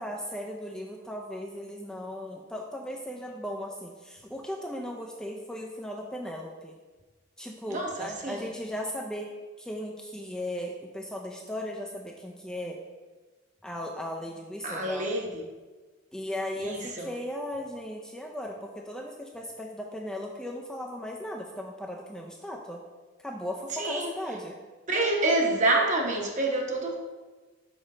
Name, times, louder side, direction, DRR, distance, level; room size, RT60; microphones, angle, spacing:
voice 1, 0.0-6.7 7.4-9.3 9.6-12.8 13.6-15.1 16.1-22.8 23.2-24.6, equal, 5° left, -1 dB, 0.4 m, -37 dB
voice 2, 7.7-8.5 14.6-15.3 16.6-17.1 23.7-24.1 24.9-27.0, right 2 dB, 40° right, 0 dB, 1.0 m, -27 dB
6.2 x 5.2 x 3.7 m, 1.3 s
head